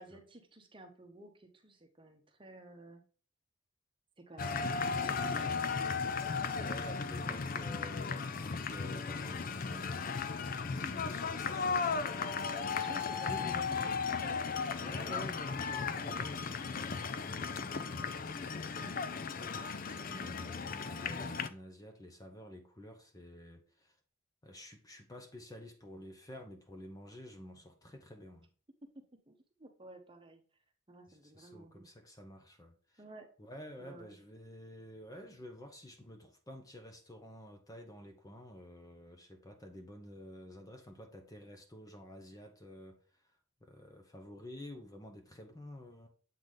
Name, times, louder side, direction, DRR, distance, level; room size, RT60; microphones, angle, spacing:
voice 1, 0.0-3.0 4.2-5.7 10.5-11.0 12.5-14.4 28.9-30.4 30.9-31.9 33.0-33.3 33.8-34.1, right 2 dB, 25° right, 0.9 m, -53 dB
sound 1, 4.4-21.5, left 5 dB, 40° left, 0.4 m, -36 dB
voice 2, 6.5-10.1 10.8-12.1 13.2-14.0 14.8-18.4 18.7-24.0 24.4-28.5 31.1-33.0 33.4-43.3 43.6-46.1, left 1 dB, 15° left, 0.8 m, -50 dB
7.5 x 4.0 x 3.4 m
head